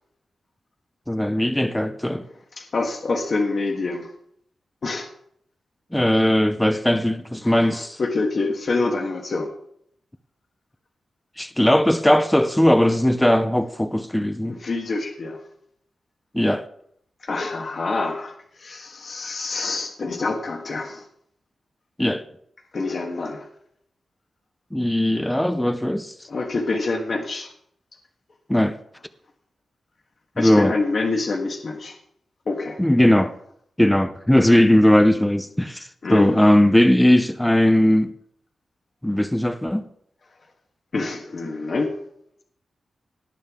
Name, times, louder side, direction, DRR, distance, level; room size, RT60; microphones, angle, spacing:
voice 1, 1.1-2.2 5.9-8.0 11.4-14.6 16.3-16.6 22.0-22.2 24.7-26.1 28.5-28.8 30.4-30.7 32.8-33.3 33.8-38.1 39.0-39.8, left 1 dB, 5° left, 0.6 m, -18 dB
voice 2, 2.6-4.1 4.8-5.1 7.4-9.5 14.5-15.4 17.2-21.0 22.7-23.5 26.3-27.5 30.4-31.9 32.5-32.8 36.0-36.4 40.9-42.0, left 3 dB, 45° left, 1.4 m, -26 dB
18.0 x 8.6 x 3.6 m
wide cardioid pair, 150°, 0 cm